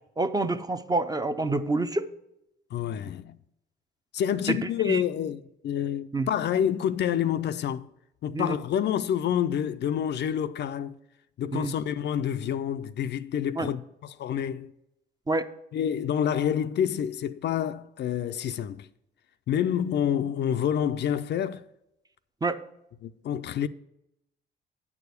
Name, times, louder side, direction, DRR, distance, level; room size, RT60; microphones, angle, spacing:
voice 1, 0.2-2.1 4.5-4.6 4.8-5.0 6.1-6.3 8.3-8.6 11.5-11.7 13.6-13.7 15.3-15.5 22.4-22.6, right 2 dB, 20° right, 0.6 m, -27 dB
voice 2, 2.7-3.4 4.1-7.9 8.2-11.0 11.4-14.7 15.7-18.9 19.5-21.6 23.0-23.7, left 9 dB, 60° left, 0.4 m, -28 dB
8.9 x 4.8 x 6.7 m
cardioid pair, 90°, 20 cm